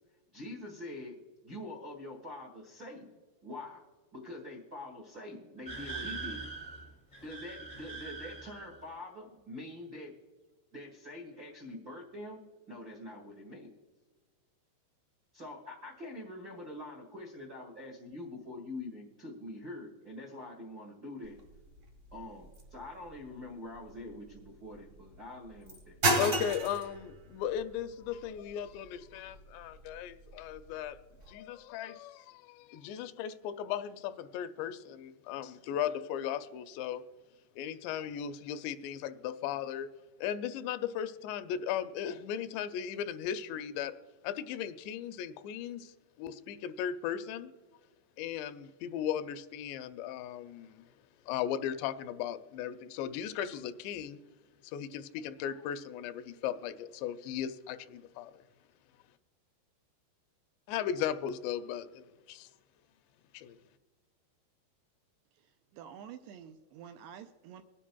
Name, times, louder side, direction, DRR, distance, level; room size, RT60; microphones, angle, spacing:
voice 1, 0.3-1.1 1.4-3.8 4.1-6.5 7.2-10.1 10.7-12.4 12.7-13.8 15.3-21.4 22.1-26.0, left 1 dB, 65° right, 0 dB, 0.9 m, -45 dB
sound 1, 5.6-8.8, right 4 dB, 10° left, 0.8 m, -42 dB
sound 2, 21.2-31.3, right 2 dB, 35° right, 1.4 m, -37 dB
voice 2, 26.1-31.0 31.3-37.0 37.6-39.9 40.2-43.9 44.2-45.9 46.2-47.5 48.2-50.8 51.3-54.2 54.6-58.3 60.7-62.5 63.3-63.6, left 9 dB, 85° left, 10 dB, 2.7 m, -37 dB
voice 3, 65.7-67.6, right 8 dB, 85° right, 7 dB, 2.4 m, -48 dB
24.5 x 10.0 x 2.3 m, 1.3 s
omnidirectional pair, 5.0 m